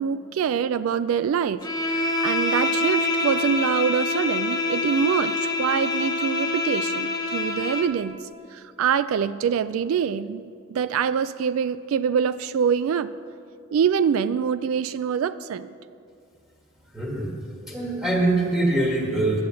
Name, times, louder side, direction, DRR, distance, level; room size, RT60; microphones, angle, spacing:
voice 1, 0.0-8.2 8.5-10.4 10.7-13.1 13.7-15.7, right 7 dB, 75° right, 14 dB, 0.3 m, -25 dB
Bowed string instrument, 1.6-8.0, left 3 dB, 20° left, 0.8 m, -26 dB
voice 2, 16.9-19.4, right 2 dB, 5° right, -3 dB, 1.6 m, -24 dB
9.5 x 8.6 x 7.5 m, 2.4 s
head